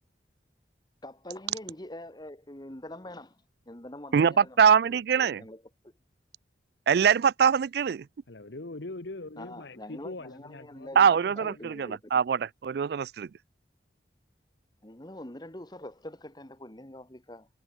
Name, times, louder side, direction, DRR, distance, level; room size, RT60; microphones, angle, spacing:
voice 1, 1.0-3.4 3.7-4.6 4.9-5.6 9.4-12.2 14.8-17.5, left 1 dB, 20° left, 1.6 m, -44 dB
voice 2, 4.1-5.4 6.9-8.0 11.0-13.3, right 7 dB, 55° right, 0.3 m, -23 dB
voice 3, 8.3-11.7, left 2 dB, 70° left, 1.2 m, -42 dB
head